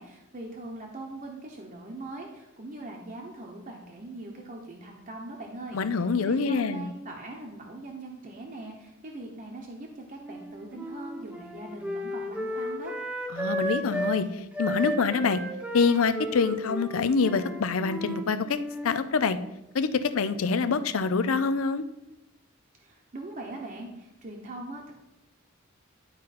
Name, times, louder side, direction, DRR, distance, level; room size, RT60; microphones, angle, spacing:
voice 1, 0.0-12.9 22.7-24.9, right 2 dB, 40° right, 0 dB, 0.9 m, -41 dB
voice 2, 5.7-6.9 13.3-15.4 15.7-18.6 18.8-19.4 19.7-21.8, left 4 dB, 80° left, 11 dB, 0.5 m, -25 dB
Wind instrument woodwind instrument, 10.2-14.2 14.5-19.0, equal, 5° right, 0.9 m, -34 dB
11.5 x 4.0 x 4.2 m, 0.93 s
head